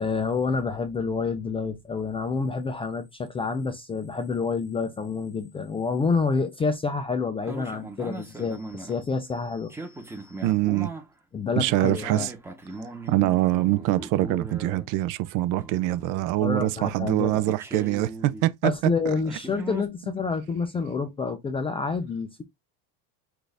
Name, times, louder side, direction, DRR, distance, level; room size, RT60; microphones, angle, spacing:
voice 1, 0.0-10.4 11.3-12.3 16.4-17.4 18.6-22.4, left 4 dB, 15° left, 0.3 m, -28 dB
sound 1, 7.4-9.0 9.7-11.1 11.7-15.1 15.5-16.6 17.3-18.5 19.2-19.9, right 2 dB, 5° right, 0.9 m, -39 dB
voice 2, 10.4-10.9 11.6-12.3 13.1-18.7, right 15 dB, 50° right, 0.5 m, -24 dB
6.1 x 2.6 x 3.3 m
cardioid pair, 140°, 41 cm